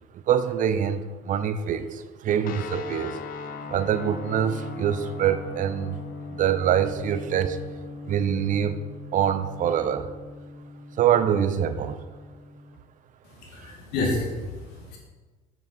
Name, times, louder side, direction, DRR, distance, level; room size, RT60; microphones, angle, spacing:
voice 1, 0.1-3.2 3.7-6.0 6.3-7.6 8.0-8.8 9.1-10.1 11.0-12.0, right 9 dB, 45° right, 12 dB, 0.7 m, -24 dB
sound 1, 2.4-12.8, left 4 dB, 55° left, 0.8 m, -39 dB
voice 2, 13.2-15.0, left 2 dB, 70° left, -1 dB, 2.1 m, -30 dB
8.9 x 6.6 x 4.1 m, 1.3 s
hypercardioid pair, 75°, 18 cm